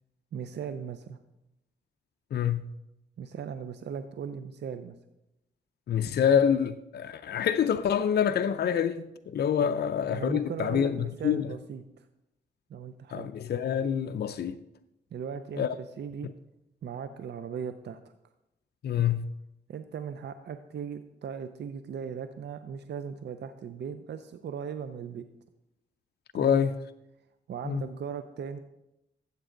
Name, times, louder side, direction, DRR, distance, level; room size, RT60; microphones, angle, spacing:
voice 1, 0.3-1.2 3.2-5.0 9.6-9.8 10.1-12.1 12.7-13.3 15.1-16.3 16.8-18.0 19.0-19.1 19.7-25.2 26.3-26.6 27.5-28.6, right 7 dB, 70° right, 0.6 m, -38 dB
voice 2, 2.3-2.7 5.9-11.5 13.1-14.6 15.6-15.7 18.8-19.3 26.3-26.7 27.7-27.8, left 8 dB, 60° left, 0.5 m, -26 dB
12.5 x 8.1 x 3.8 m
cardioid pair, 75°, 18 cm